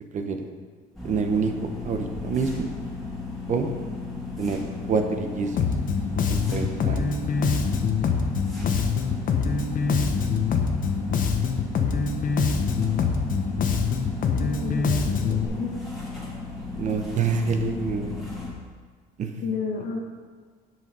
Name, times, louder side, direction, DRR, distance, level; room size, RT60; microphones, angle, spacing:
voice 1, 0.1-0.4 1.0-2.7 3.5-3.7 4.4-5.7 6.3-7.2 16.7-18.3 19.2-19.4, right 5 dB, 45° right, 6 dB, 0.9 m, -27 dB
sound 1, 0.9-18.5, left 3 dB, ahead, 2.4 m, -35 dB
Bass guitar, 5.6-15.5, left 5 dB, 55° left, 0.9 m, -24 dB
voice 2, 14.4-15.7 19.4-20.0, left 5 dB, 75° left, 0 dB, 1.7 m, -32 dB
7.6 x 6.1 x 5.4 m, 1.5 s
cardioid pair, 110°, 17 cm